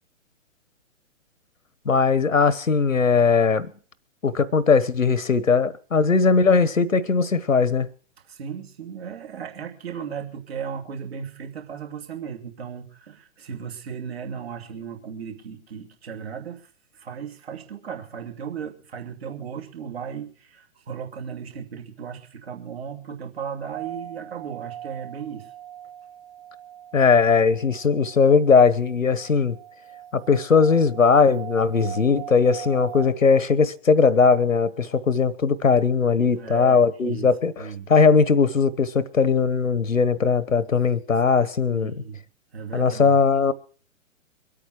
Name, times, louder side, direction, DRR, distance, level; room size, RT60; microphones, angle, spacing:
voice 1, 1.8-3.7 4.2-7.9 26.9-29.6 30.1-41.9 42.7-43.5, left 5 dB, 75° left, 1.3 m, -19 dB
voice 2, 8.3-25.5 36.4-37.3 37.6-37.9 41.7-42.2 42.5-43.2, right 7 dB, 50° right, 2.8 m, -36 dB
sound 1, 23.7-33.1, right 11 dB, 20° right, 2.4 m, -41 dB
23.0 x 8.8 x 6.1 m
figure-of-eight pair, 120°, 40 cm